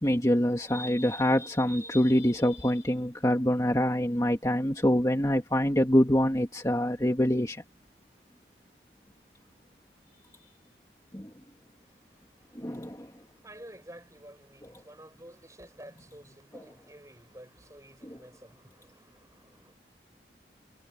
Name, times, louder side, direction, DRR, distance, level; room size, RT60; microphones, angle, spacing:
voice 1, 0.0-7.6 11.1-11.3 12.6-13.1 16.5-16.6 18.0-18.2, equal, 20° left, 1.9 m, -25 dB
voice 2, 13.4-18.6, right 1 dB, 20° right, 7.2 m, -50 dB
head